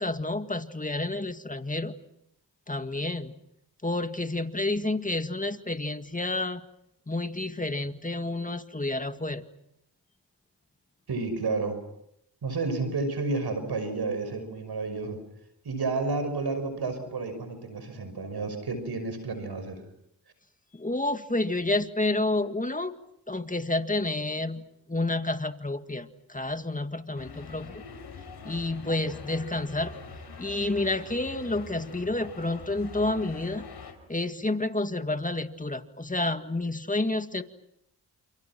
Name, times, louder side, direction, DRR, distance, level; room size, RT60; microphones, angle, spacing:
voice 1, 0.0-1.9 2.7-3.3 3.8-6.6 7.1-9.5 20.7-22.9 23.3-27.8 28.4-29.9 30.4-33.7 34.1-37.4, left 2 dB, 20° left, 8 dB, 2.0 m, -29 dB
voice 2, 11.1-11.8 12.4-15.2 15.6-19.8, right 3 dB, 70° right, 9 dB, 6.0 m, -31 dB
sound 1, 27.2-33.9, left 4 dB, 80° left, 5.2 m, -44 dB
29.0 x 29.0 x 6.1 m, 0.76 s
cardioid pair, 50°, 40 cm